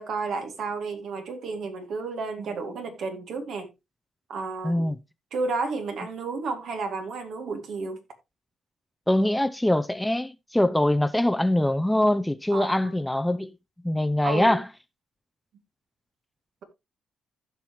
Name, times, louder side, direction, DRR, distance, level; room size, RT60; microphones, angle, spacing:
voice 1, 0.0-3.7 4.3-4.9 5.3-8.0 12.5-12.9 14.2-14.6, right 4 dB, 70° right, 2.3 m, -32 dB
voice 2, 4.6-5.0 9.1-13.5 13.8-14.7, left 1 dB, 5° left, 0.5 m, -23 dB
15.5 x 5.7 x 3.0 m
cardioid pair, 90°, 0 cm